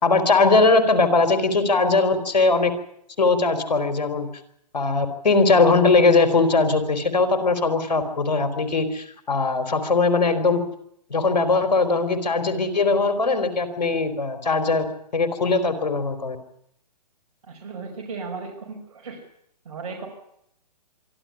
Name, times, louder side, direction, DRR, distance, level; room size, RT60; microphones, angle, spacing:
voice 1, 0.0-2.7 3.2-4.3 4.7-10.6 11.1-14.8 15.1-16.4, left 3 dB, 90° left, 9 dB, 4.0 m, -20 dB
voice 2, 17.4-19.2 19.6-20.1, right 4 dB, 55° right, 2 dB, 5.7 m, -35 dB
24.5 x 13.0 x 9.9 m, 0.73 s
hypercardioid pair, 145°, 21 cm